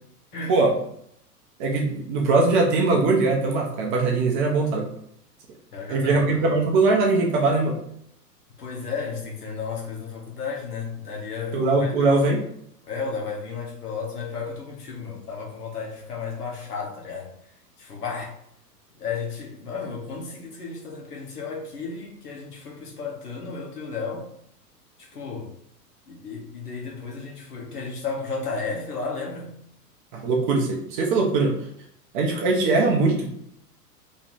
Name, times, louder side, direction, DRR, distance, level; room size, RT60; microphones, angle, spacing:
voice 1, 1.6-4.9 5.9-7.8 11.5-12.4 30.1-31.6 32.1-33.3, right 3 dB, 30° right, 0 dB, 0.8 m, -21 dB
voice 2, 5.7-6.5 8.6-12.2 12.8-17.3 17.8-18.3 19.0-24.3 25.0-25.5 26.1-29.5, left 5 dB, 70° left, -1 dB, 1.4 m, -33 dB
3.1 x 3.1 x 4.1 m, 0.69 s
figure-of-eight pair, 105°, 49 cm